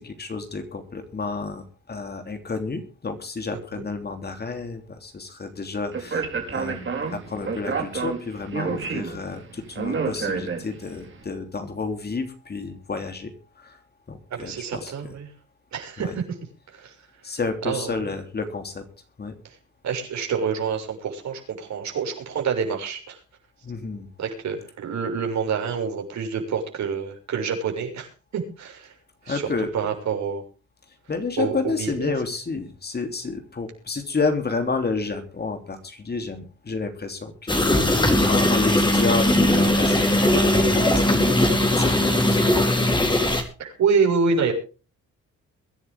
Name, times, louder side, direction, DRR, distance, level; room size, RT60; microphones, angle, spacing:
voice 1, 0.0-6.2 6.5-13.8 14.1-15.1 16.0-16.1 17.2-18.8 19.2-19.3 23.6-24.1 29.3-29.7 31.1-42.7, left 4 dB, 35° left, 6 dB, 3.2 m, -30 dB
voice 2, 3.5-3.8 14.3-15.3 15.7-16.2 16.7-16.9 17.6-18.1 19.8-23.2 24.2-28.9 29.2-29.5 29.7-30.4 31.4-32.1 43.6-44.5, right 5 dB, 65° right, 3 dB, 6.5 m, -27 dB
Speech, 5.9-11.0, right 5 dB, 40° right, 3.8 m, -29 dB
sound 1, 37.5-43.4, left 1 dB, 15° left, 4.0 m, -19 dB
23.0 x 11.0 x 3.6 m, 0.35 s
cardioid pair, 90°, 30 cm